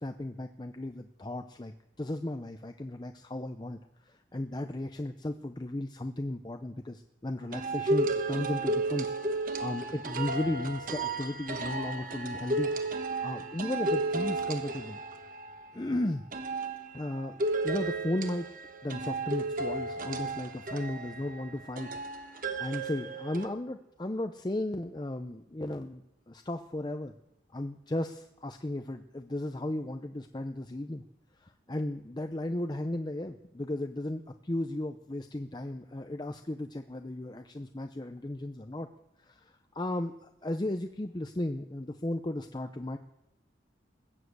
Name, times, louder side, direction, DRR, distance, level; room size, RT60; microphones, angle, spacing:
voice 1, 0.0-9.1 9.6-12.7 13.2-15.0 15.7-16.2 16.9-18.5 18.8-27.1 27.5-31.0 31.4-38.9 39.2-43.0, left 1 dB, 25° left, 7 dB, 0.6 m, -35 dB
sound 1, 7.5-15.7 16.3-23.5, right 2 dB, 45° right, 1.1 m, -33 dB
20.5 x 7.6 x 8.1 m, 0.83 s
head